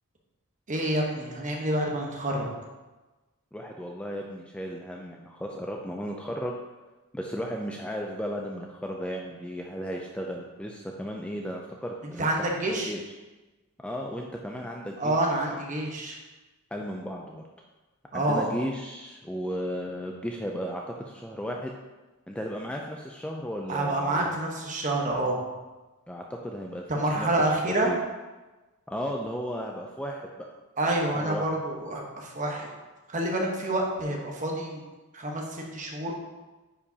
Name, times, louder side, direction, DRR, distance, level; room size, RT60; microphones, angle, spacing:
voice 1, 0.7-2.5 12.0-12.9 15.0-16.2 18.1-18.5 23.7-25.4 26.9-27.9 30.8-32.7 33.1-34.8 35.1-36.2, right 1 dB, 35° right, 0 dB, 1.1 m, -28 dB
voice 2, 3.5-6.6 7.1-13.0 13.8-15.1 15.5-15.6 16.7-17.4 18.1-21.7 22.3-24.4 26.1-26.8 27.2-27.3 27.7-28.0 28.9-30.5 30.9-31.4, equal, 5° left, 0 dB, 0.4 m, -35 dB
10.0 x 4.9 x 2.8 m, 1.2 s
head